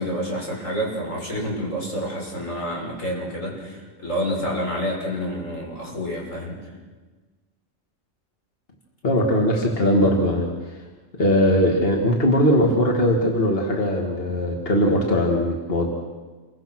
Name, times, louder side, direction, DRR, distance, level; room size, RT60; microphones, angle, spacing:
voice 1, 0.0-6.6 9.5-9.8, equal, 85° left, -2 dB, 6.9 m, -28 dB
voice 2, 9.0-10.8 11.2-15.9, equal, 45° left, 0 dB, 2.6 m, -20 dB
28.5 x 23.5 x 6.2 m, 1.3 s
omnidirectional pair, 1.3 m